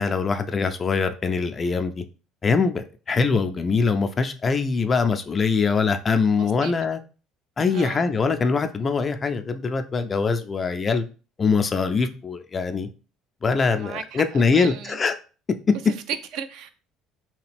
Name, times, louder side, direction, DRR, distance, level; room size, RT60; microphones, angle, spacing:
voice 1, 0.0-2.0 2.4-7.0 7.6-11.0 11.4-12.9 13.4-15.1, left 4 dB, 35° left, 0.4 m, -23 dB
voice 2, 6.3-6.7 7.7-8.1 13.8-15.0 15.7-16.7, right 8 dB, 65° right, 0.4 m, -35 dB
2.9 x 2.4 x 3.3 m
hypercardioid pair, 65°, 0 cm